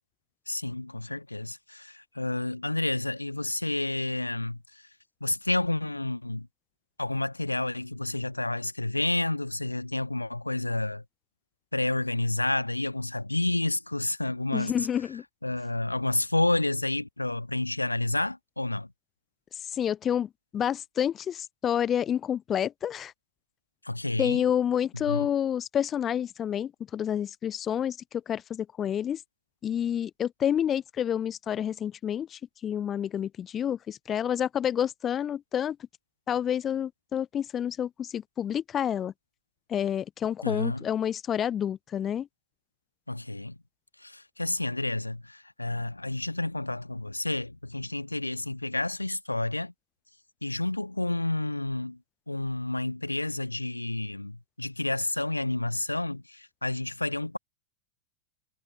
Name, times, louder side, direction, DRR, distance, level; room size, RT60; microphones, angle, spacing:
voice 1, 0.5-4.6 5.2-6.5 7.0-11.0 11.7-14.9 15.4-18.9 23.8-24.4 25.0-25.3 40.4-40.8 43.1-43.6 44.0-49.7 50.4-52.0 52.3-57.4, left 2 dB, 85° left, 1.4 m, -30 dB
voice 2, 14.5-15.2 19.7-23.1 24.2-29.2 29.6-35.8 36.3-39.1 39.7-42.3, left 9 dB, 25° left, 0.3 m, -29 dB
figure-of-eight pair, 90°, 0 cm